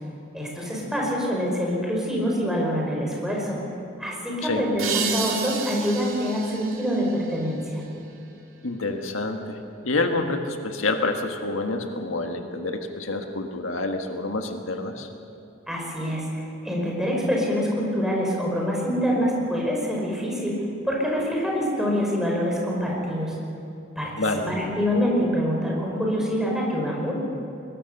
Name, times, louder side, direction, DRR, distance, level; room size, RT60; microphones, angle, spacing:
voice 1, 0.3-3.6 4.0-7.8 15.7-20.5 20.8-23.4 24.0-27.1, equal, 5° right, -2 dB, 5.2 m, -25 dB
sound 1, 4.8-8.2, right 6 dB, 90° right, 3.0 m, -32 dB
voice 2, 8.6-9.6 9.8-15.1 24.2-24.5, left 2 dB, 85° left, 4 dB, 1.6 m, -27 dB
22.5 x 20.5 x 6.7 m, 2.8 s
head